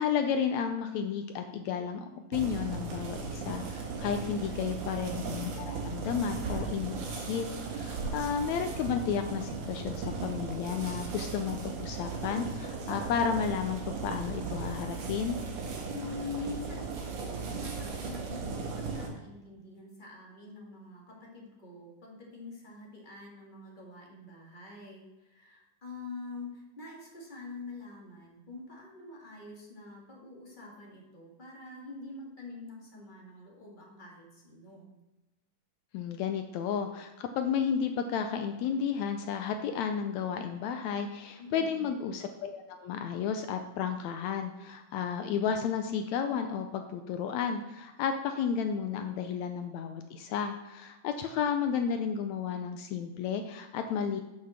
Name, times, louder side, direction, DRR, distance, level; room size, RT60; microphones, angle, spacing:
voice 1, 0.0-2.0 2.3-15.4 35.9-54.2, left 7 dB, 80° left, 6 dB, 1.6 m, -32 dB
sound 1, 2.3-19.1, right 4 dB, 70° right, 2.9 m, -37 dB
voice 2, 4.3-4.9 15.9-34.9 41.4-41.9, left 3 dB, 20° left, -2 dB, 1.5 m, -45 dB
7.4 x 5.9 x 6.4 m, 1.1 s
omnidirectional pair, 3.8 m